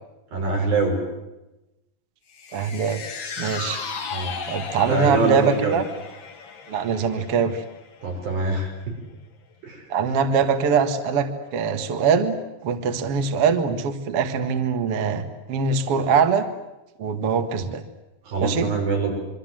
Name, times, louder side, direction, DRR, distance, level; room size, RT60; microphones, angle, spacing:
voice 1, 0.3-1.0 4.1-4.4 4.7-5.8 8.0-8.7 9.6-9.8 18.2-19.1, right 3 dB, 90° right, 1 dB, 7.7 m, -24 dB
sound 1, 2.3-8.8 9.1-9.2, left 5 dB, 45° left, 1.8 m, -36 dB
voice 2, 2.5-3.0 3.4-3.8 4.5-5.9 6.7-7.6 9.9-12.3 12.6-16.5 17.0-17.8 18.4-18.7, right 6 dB, 50° right, 6 dB, 2.3 m, -22 dB
26.5 x 24.0 x 7.7 m, 0.98 s
omnidirectional pair, 4.0 m